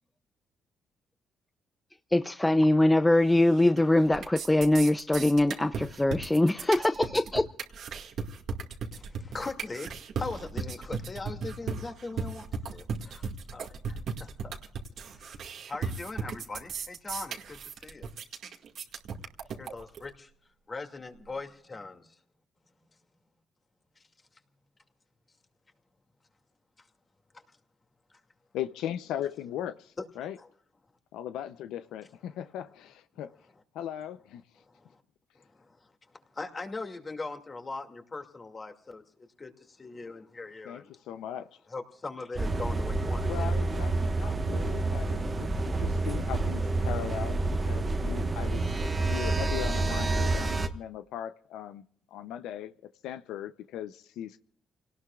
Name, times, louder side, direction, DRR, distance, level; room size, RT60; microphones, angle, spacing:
voice 1, 2.1-7.4, left 1 dB, 10° left, 0.6 m, -23 dB
sound 1, 3.3-3.8 4.1-20.1, right 5 dB, 65° right, 1.9 m, -36 dB
voice 2, 8.9-14.6 15.0-15.4 15.7-18.1 19.6-20.3 20.7-22.2 30.0-30.1 30.4-30.5 32.3-32.4 34.7-35.0 35.4-35.9 36.3-39.0 39.4-40.9 41.7-43.5, left 3 dB, 30° left, 2.4 m, -40 dB
voice 3, 28.5-30.4 31.1-33.3 33.7-34.4 40.6-41.5 43.2-51.8 52.1-52.7 53.0-54.4, left 10 dB, 90° left, 0.6 m, -38 dB
sound 2, 42.4-50.7, right 2 dB, 30° right, 1.3 m, -28 dB
29.5 x 18.5 x 2.4 m
cardioid pair, 90°, 0 cm